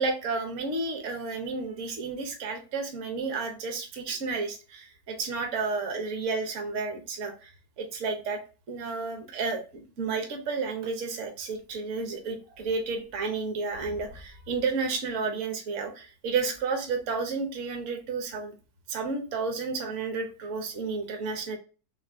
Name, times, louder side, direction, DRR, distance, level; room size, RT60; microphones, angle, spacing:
voice 1, 0.0-7.5 7.8-8.4 8.7-18.5 18.9-21.6, right 4 dB, 50° right, 4 dB, 1.1 m, -31 dB
4.1 x 3.4 x 3.4 m, 0.35 s
omnidirectional pair, 2.1 m